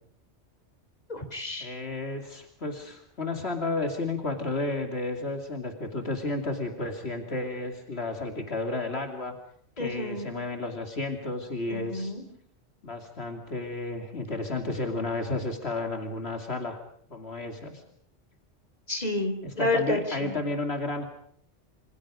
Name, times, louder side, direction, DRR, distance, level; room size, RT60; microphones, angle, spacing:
voice 1, 1.1-1.8 9.8-10.3 11.7-12.2 18.9-20.4, left 2 dB, 35° left, 6 dB, 3.7 m, -30 dB
voice 2, 1.6-9.3 9.8-12.1 12.8-16.8 17.1-17.8 19.4-21.0, left 2 dB, 65° left, 4 dB, 3.1 m, -32 dB
27.5 x 26.5 x 5.1 m, 0.63 s
omnidirectional pair, 1.2 m